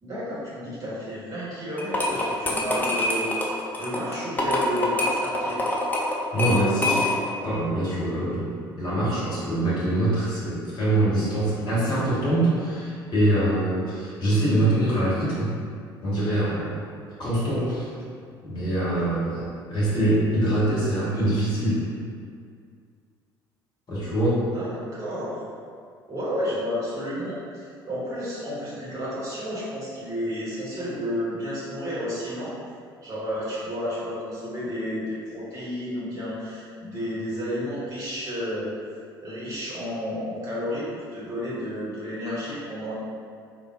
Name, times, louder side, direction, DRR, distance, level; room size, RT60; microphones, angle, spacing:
voice 1, 0.0-5.6 24.3-25.4 26.1-32.5 33.0-38.7 39.2-42.9, equal, 25° right, -8 dB, 1.1 m, -31 dB
sound 1, 1.8-7.4, left 2 dB, 15° left, 0.5 m, -25 dB
voice 2, 6.3-7.1 7.4-15.6 16.0-16.8 17.2-17.9 18.4-19.4 19.7-21.9 23.9-24.4, right 1 dB, 35° left, -9 dB, 1.3 m, -24 dB
3.5 x 2.1 x 2.4 m, 2.2 s
figure-of-eight pair, 55°, 13 cm